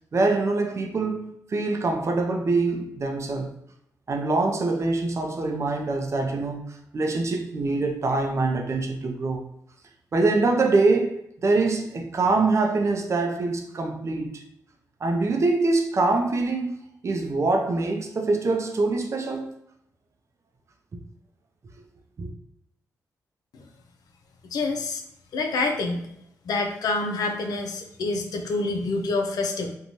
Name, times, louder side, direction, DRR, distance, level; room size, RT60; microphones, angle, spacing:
voice 1, 0.1-3.5 4.1-9.5 10.1-14.4 15.0-19.5 22.2-22.3, right 3 dB, 45° right, 0.5 m, -24 dB
voice 2, 24.5-25.0 25.3-26.0 26.5-29.8, left 3 dB, 70° left, 0.5 m, -27 dB
2.6 x 2.2 x 3.0 m
cardioid pair, 60°, 7 cm